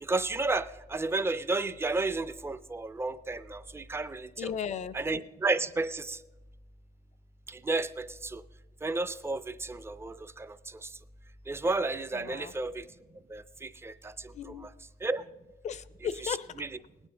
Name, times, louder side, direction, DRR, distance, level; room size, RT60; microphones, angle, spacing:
voice 1, 0.0-4.5 4.9-6.2 7.5-8.4 8.8-10.9 11.5-12.9 13.3-14.3 14.6-14.7 15.0-15.2 16.2-16.7, right 3 dB, 15° right, 13 dB, 0.4 m, -32 dB
voice 2, 4.4-4.9 12.1-12.5 14.3-14.7 15.6-16.5, left 8 dB, 45° left, 16 dB, 0.5 m, -35 dB
19.0 x 8.9 x 3.8 m, 1.1 s
cardioid pair, 110°, 17 cm